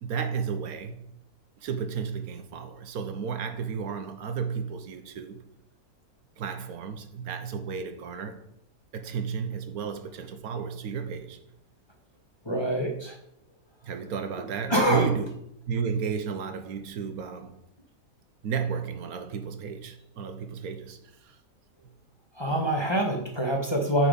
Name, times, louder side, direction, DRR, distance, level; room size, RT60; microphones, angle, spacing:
voice 1, 0.0-1.1 1.6-5.4 6.4-8.4 8.9-11.4 13.8-15.3 15.7-17.6 18.4-21.4 22.5-22.6, right 6 dB, 80° right, 1.3 m, -33 dB
voice 2, 12.4-13.2 14.7-15.1 22.3-24.1, right 1 dB, 20° left, 1.0 m, -25 dB
9.0 x 4.1 x 5.1 m
omnidirectional pair, 1.5 m